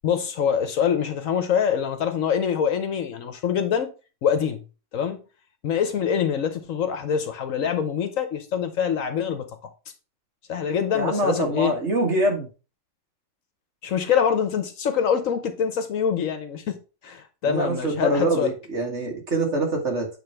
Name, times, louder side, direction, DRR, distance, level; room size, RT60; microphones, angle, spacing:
voice 1, 0.0-3.9 4.2-4.6 4.9-5.2 5.6-9.7 10.5-11.7 13.8-16.8 17.0-18.5, left 8 dB, 65° left, 1.1 m, -24 dB
voice 2, 10.9-12.5 17.4-20.1, right 2 dB, 50° right, 2.0 m, -24 dB
8.7 x 3.4 x 4.5 m
omnidirectional pair, 1.6 m